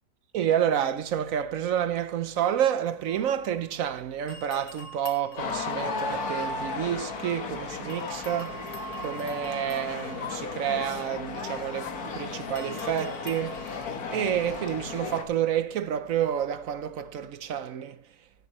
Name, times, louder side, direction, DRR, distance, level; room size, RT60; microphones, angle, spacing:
voice 1, 0.3-8.7 9.0-18.0, right 9 dB, 65° right, 0.9 m, -29 dB
sound 1, 2.4-3.9 4.3-7.5 7.9-14.7, right 3 dB, 75° left, 2.6 m, -47 dB
sound 2, 5.4-15.2, left 4 dB, 60° left, 1.7 m, -35 dB
16.5 x 8.1 x 3.0 m
omnidirectional pair, 1.9 m